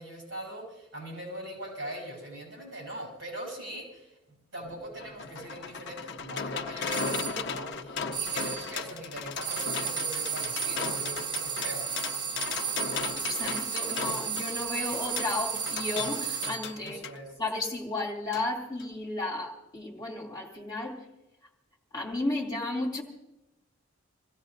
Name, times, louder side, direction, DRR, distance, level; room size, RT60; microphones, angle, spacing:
voice 1, 0.0-4.1 4.5-11.9 16.8-17.3, right 1 dB, 70° right, 0 dB, 7.9 m, -41 dB
sound 1, 4.6-17.2 18.3-18.5 18.8-18.9, left 5 dB, 60° left, 0.7 m, -37 dB
sound 2, 6.9-7.4 8.1-8.8 9.4-16.8, right 7 dB, 20° right, 0.5 m, -33 dB
voice 2, 12.9-17.0 17.4-21.0 21.9-23.0, left 2 dB, 20° left, -2 dB, 2.6 m, -33 dB
28.0 x 16.5 x 2.6 m, 0.90 s
head